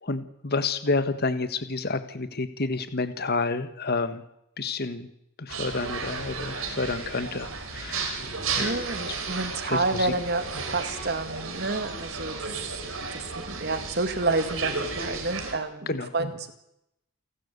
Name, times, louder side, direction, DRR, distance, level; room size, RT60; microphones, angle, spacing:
voice 1, 0.0-4.2 4.6-5.1 5.4-8.2 8.5-8.7 9.1-9.2 9.6-10.1 15.9-16.1, left 3 dB, 45° left, 11 dB, 1.4 m, -29 dB
sound 1, 5.5-15.6, right 4 dB, 65° right, 4.0 m, -33 dB
voice 2, 8.6-12.8 13.1-16.5, right 3 dB, 45° right, 9 dB, 1.9 m, -29 dB
28.5 x 12.5 x 8.2 m, 0.81 s
head